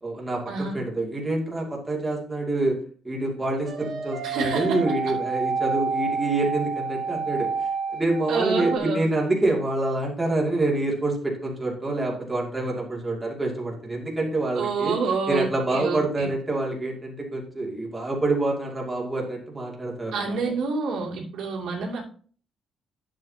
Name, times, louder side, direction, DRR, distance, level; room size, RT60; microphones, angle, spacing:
voice 1, 0.0-2.8 3.0-15.0 15.3-20.4, right 2 dB, 15° right, -2 dB, 2.5 m, -27 dB
sound 1, 3.7-8.8, right 5 dB, 65° right, 2.0 m, -29 dB
voice 2, 4.2-4.7 8.3-9.0 14.6-16.3 20.1-22.0, right 4 dB, 85° right, -2 dB, 2.7 m, -27 dB
10.5 x 7.6 x 2.9 m, 0.43 s
cardioid pair, 150°, 0 cm